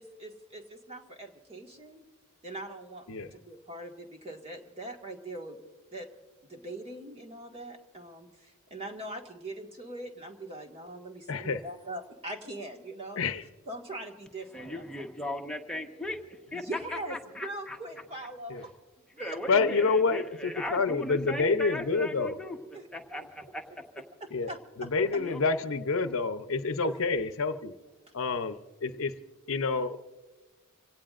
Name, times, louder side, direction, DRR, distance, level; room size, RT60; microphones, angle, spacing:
voice 1, 0.0-2.1 2.4-3.1 3.3-5.6 5.9-6.1 6.5-13.2 13.7-14.9 16.5-18.7 19.2-19.4 22.7-22.9 23.1-23.8 24.5-25.2 26.8-27.0, right 1 dB, 30° right, 2 dB, 1.9 m, -42 dB
voice 2, 11.3-11.6 13.2-13.4 18.5-18.6 19.5-22.3 24.3-24.5 24.8-27.7 28.1-29.1 29.5-30.0, left 4 dB, 65° left, 9 dB, 0.7 m, -28 dB
voice 3, 14.5-17.8 19.2-22.6 22.9-24.0 25.1-25.4, left 1 dB, 5° left, 1 dB, 1.2 m, -38 dB
26.5 x 17.5 x 2.5 m, 1.2 s
head